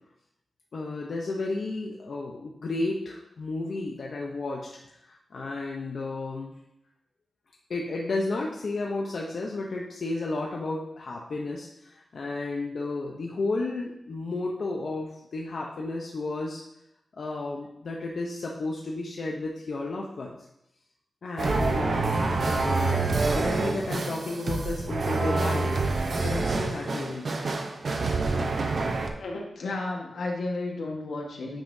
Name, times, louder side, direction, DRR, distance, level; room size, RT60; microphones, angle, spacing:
voice 1, 0.7-4.7 5.0-6.6 7.7-16.6 17.2-20.4 21.2-27.3, left 2 dB, 55° left, -1 dB, 0.7 m, -33 dB
sound 1, 21.4-29.1, right 3 dB, 50° right, 0.6 m, -27 dB
voice 2, 29.2-31.6, left 2 dB, 80° left, 0 dB, 1.3 m, -33 dB
8.8 x 5.5 x 2.7 m, 0.82 s
wide cardioid pair, 155°, 0 cm